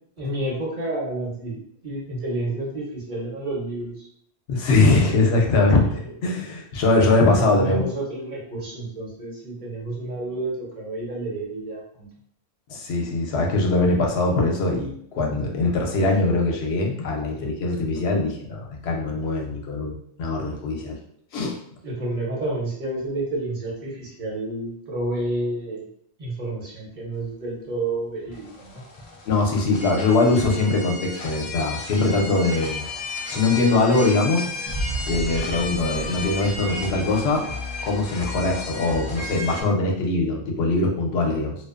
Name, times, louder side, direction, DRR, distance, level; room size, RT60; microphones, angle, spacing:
voice 1, 0.2-4.1 6.0-6.1 7.0-12.1 21.8-25.8 26.2-28.8, right 2 dB, 50° right, -4 dB, 0.8 m, -30 dB
voice 2, 4.5-7.8 12.7-21.0 21.3-21.6 29.3-32.9 33.3-34.5 35.1-37.5 37.8-41.6, left 3 dB, 80° left, 1 dB, 0.8 m, -22 dB
sound 1, 28.3-39.6, left 2 dB, 55° left, 0.4 m, -34 dB
Boom, 34.7-37.6, right 2 dB, 80° right, 0.8 m, -33 dB
2.5 x 2.2 x 2.4 m, 0.67 s
omnidirectional pair, 1.1 m